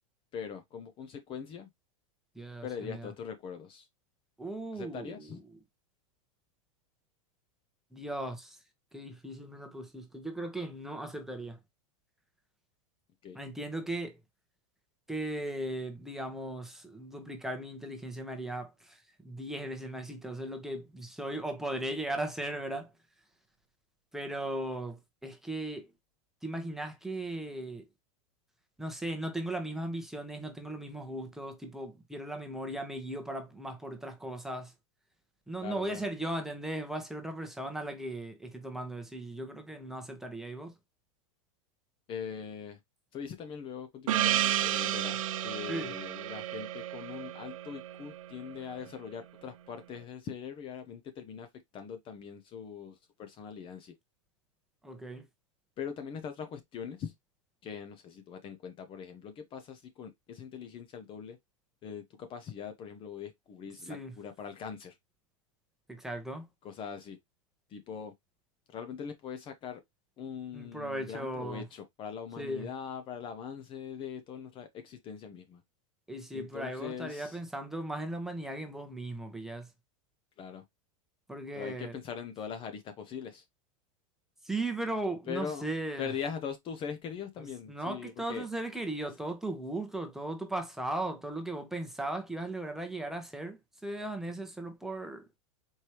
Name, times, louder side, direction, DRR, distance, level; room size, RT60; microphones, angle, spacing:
voice 1, 0.3-1.7 2.6-3.9 4.7-5.4 13.2-13.4 35.6-36.0 42.1-42.8 43.1-51.5 51.7-53.9 55.8-57.1 57.6-61.4 61.8-65.0 66.6-67.2 67.7-68.1 68.7-69.8 70.2-75.6 76.3-77.4 80.4-80.6 81.5-83.4 85.3-85.7 86.0-88.5, left 7 dB, 30° left, 0.7 m, -41 dB
voice 2, 2.4-3.1 4.4-5.6 7.9-8.6 8.9-11.6 13.3-14.2 15.1-22.9 24.1-25.9 26.4-27.9 28.8-34.7 35.5-40.7 45.7-45.9 54.8-55.2 63.8-64.1 65.9-66.5 70.5-71.6 72.4-72.7 76.1-79.7 81.3-82.0 84.4-86.1 87.4-95.3, right 1 dB, ahead, 1.0 m, -37 dB
Gong, 44.1-48.8, right 12 dB, 80° right, 0.6 m, -32 dB
4.5 x 3.3 x 2.9 m
supercardioid pair, 130°, 17 cm